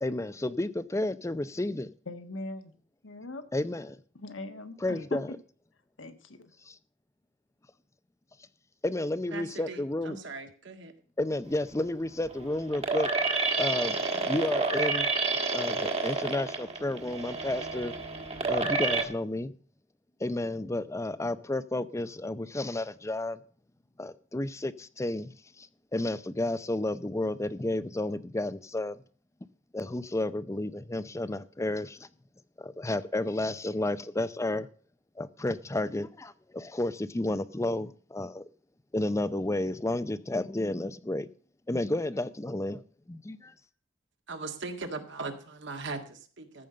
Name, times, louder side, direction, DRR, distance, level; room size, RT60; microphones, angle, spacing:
voice 1, 0.0-1.9 3.5-4.0 4.8-5.3 6.7-6.8 8.8-10.2 11.2-15.1 15.5-17.9 18.5-19.5 20.2-23.4 24.0-25.7 25.9-29.0 29.7-32.1 32.6-34.7 35.2-38.5 38.9-41.3 41.7-42.8 43.1-43.5, left 1 dB, 15° left, 0.5 m, -31 dB
voice 2, 2.1-2.7 3.0-3.4 4.1-5.2 6.0-6.5, left 2 dB, 70° left, 1.4 m, -40 dB
voice 3, 9.3-10.9 44.3-46.7, right 3 dB, 65° right, 1.8 m, -39 dB
sound 1, 11.5-19.0, right 4 dB, 30° right, 1.5 m, -30 dB
14.0 x 5.4 x 7.6 m
head